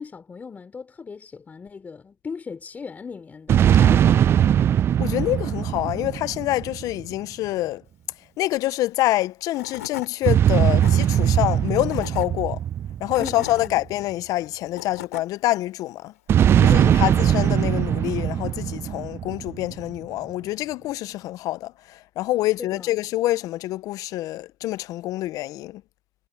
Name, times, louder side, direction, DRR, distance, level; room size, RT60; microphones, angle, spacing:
voice 1, 0.0-4.7 13.2-13.7 16.7-17.2 22.6-22.9, left 5 dB, 20° left, 3.9 m, -37 dB
sound 1, 3.5-7.1 10.3-13.9 16.3-19.7, right 10 dB, 30° right, 0.5 m, -20 dB
voice 2, 5.0-7.8 8.4-12.6 13.0-16.1 16.6-25.8, left 16 dB, 50° left, 0.7 m, -26 dB
Tools / Wood, 9.2-9.3 9.5-10.1 10.6-10.9 11.7-12.3 12.9-13.7 14.5-15.3, left 12 dB, 85° left, 5.8 m, -37 dB
hypercardioid pair, 105°, 8 cm